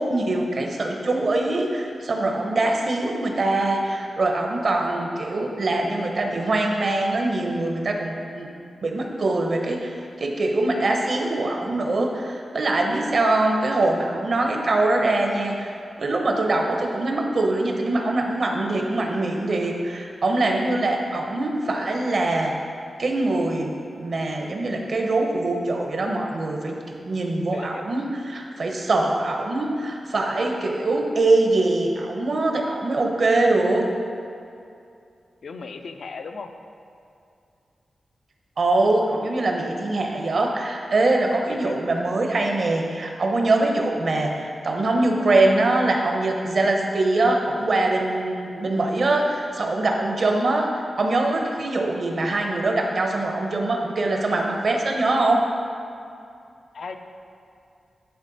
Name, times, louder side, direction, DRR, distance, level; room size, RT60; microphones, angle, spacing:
voice 1, 0.0-8.5 8.8-9.9 10.2-15.7 16.0-22.5 23.0-33.9 38.6-55.4, right 2 dB, 50° right, 2 dB, 0.8 m, -23 dB
voice 2, 27.5-27.8 35.4-36.5 41.5-41.7 52.3-52.5 56.7-57.0, left 4 dB, 65° left, 7 dB, 0.5 m, -37 dB
10.5 x 4.3 x 4.0 m, 2.5 s
wide cardioid pair, 130°, 0 cm